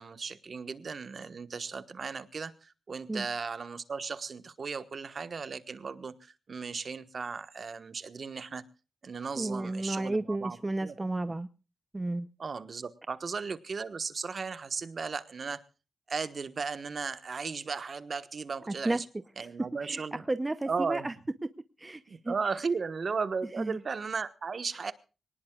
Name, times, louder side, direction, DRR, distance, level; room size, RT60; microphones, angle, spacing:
voice 1, 0.0-8.6 9.0-10.9 12.4-15.6 16.1-19.0 19.4-20.2 20.7-21.1 22.1-24.9, right 5 dB, 45° right, 12 dB, 1.3 m, -36 dB
voice 2, 9.4-11.5 11.9-12.3 18.7-19.0 19.4-19.5 19.8-21.1 21.8-22.3 23.6-23.8, right 2 dB, 20° right, 11 dB, 0.7 m, -32 dB
25.5 x 19.0 x 2.4 m, 0.34 s
wide cardioid pair, 130°, 0 cm